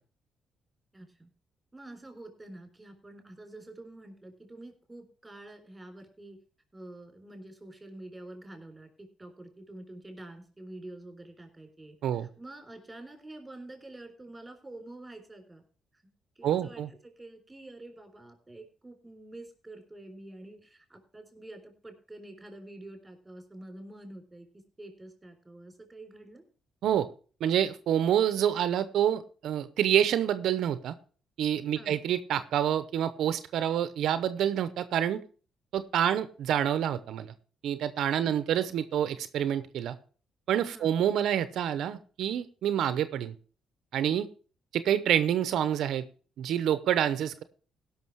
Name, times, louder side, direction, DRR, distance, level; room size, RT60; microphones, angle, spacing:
voice 1, 0.9-1.3 1.7-6.4 6.7-15.6 16.4-26.4 31.8-32.0 40.7-41.0, right 2 dB, 15° right, 5 dB, 3.8 m, -47 dB
voice 2, 16.4-16.9 26.8-27.1 27.4-30.9 31.4-35.2 35.7-37.3 37.6-40.0 40.5-43.3 43.9-44.3 44.7-46.1 46.4-47.4, right 10 dB, 75° right, 13 dB, 0.7 m, -27 dB
17.0 x 6.0 x 4.6 m, 0.40 s
cardioid pair, 90°, 0 cm